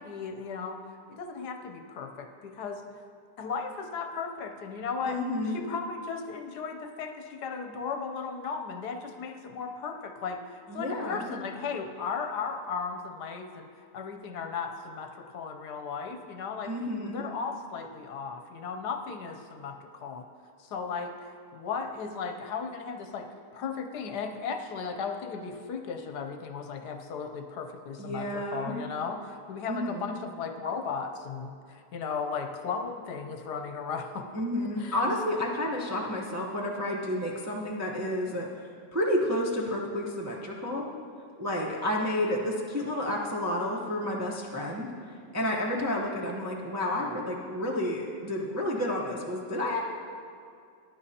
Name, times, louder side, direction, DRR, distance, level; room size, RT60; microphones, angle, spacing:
voice 1, 0.0-3.0 3.4-16.7 17.0-20.3 20.6-23.3 23.5-34.3 34.6-35.0, left 5 dB, 70° left, 5 dB, 1.2 m, -36 dB
voice 2, 5.1-5.6 10.7-11.4 16.6-17.2 28.0-28.8 29.7-30.1 34.3-38.5 38.9-40.9 41.4-44.9 45.3-49.8, left 1 dB, 15° right, -3 dB, 0.5 m, -30 dB
15.0 x 11.0 x 2.8 m, 2.4 s
omnidirectional pair, 1.9 m